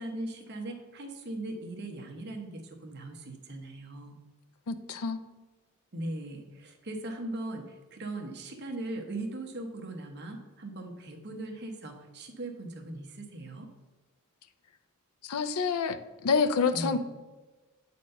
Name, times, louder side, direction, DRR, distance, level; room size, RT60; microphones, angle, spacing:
voice 1, 0.0-4.1 5.9-13.7 16.7-17.0, right 1 dB, 50° right, 3 dB, 1.0 m, -39 dB
voice 2, 4.7-5.2 15.2-16.0 16.2-17.0, left 5 dB, 75° left, 10 dB, 0.5 m, -27 dB
7.7 x 4.2 x 5.4 m, 1.2 s
head